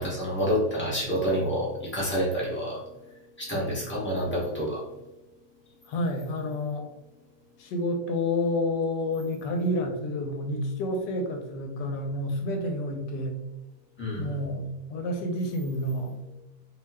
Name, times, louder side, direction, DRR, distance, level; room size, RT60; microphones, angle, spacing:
voice 1, 0.0-2.8 3.4-4.8 14.0-14.4, equal, 15° left, -7 dB, 0.4 m, -28 dB
voice 2, 5.9-6.9 7.6-13.3 14.2-16.1, left 1 dB, 75° left, 3 dB, 1.2 m, -29 dB
2.9 x 2.2 x 3.3 m, 0.94 s
omnidirectional pair, 1.9 m